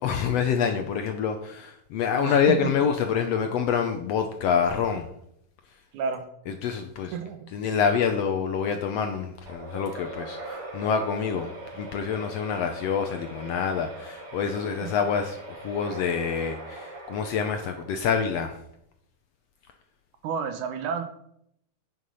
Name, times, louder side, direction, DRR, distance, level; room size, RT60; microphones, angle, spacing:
voice 1, 0.0-5.0 6.6-7.1 7.5-18.5, left 7 dB, 75° left, 6 dB, 1.5 m, -26 dB
voice 2, 2.1-2.7 5.9-6.3 7.1-7.5 14.8-14.9 20.2-21.0, right 6 dB, 80° right, 7 dB, 2.5 m, -30 dB
sound 1, 9.4-18.2, right 2 dB, 60° right, 4.3 m, -41 dB
9.1 x 6.6 x 5.5 m, 0.74 s
omnidirectional pair, 3.5 m